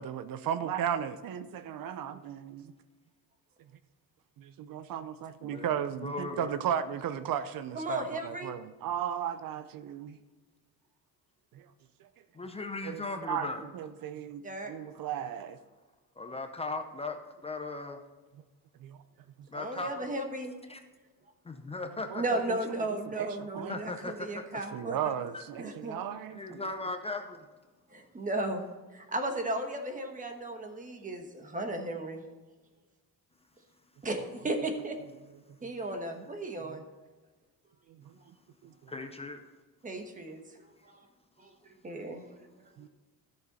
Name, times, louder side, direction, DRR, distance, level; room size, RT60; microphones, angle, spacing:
voice 1, 0.0-2.7 4.4-10.2 11.5-11.7 12.8-13.5 13.7-15.6 18.8-19.0 22.1-22.6 23.1-23.7 24.7-26.6 35.6-35.7 37.9-38.1 38.6-38.9 42.8-42.9, right 9 dB, 70° right, 12 dB, 0.6 m, -35 dB
voice 2, 5.4-6.5 12.3-13.7 16.2-18.0 19.5-20.1 20.7-20.8 21.4-22.2 23.7-24.4 25.3-25.4 26.3-27.5 38.9-39.4, left 3 dB, 15° left, 6 dB, 0.6 m, -38 dB
voice 3, 7.7-8.5 14.4-14.7 19.5-20.5 22.1-25.1 25.6-26.0 27.9-32.2 34.0-35.0 35.6-36.8 39.8-40.4 40.8-40.9 41.4-42.4, right 2 dB, 20° right, 5 dB, 1.2 m, -35 dB
13.5 x 6.6 x 4.1 m, 1.3 s
cardioid pair, 155°, 36 cm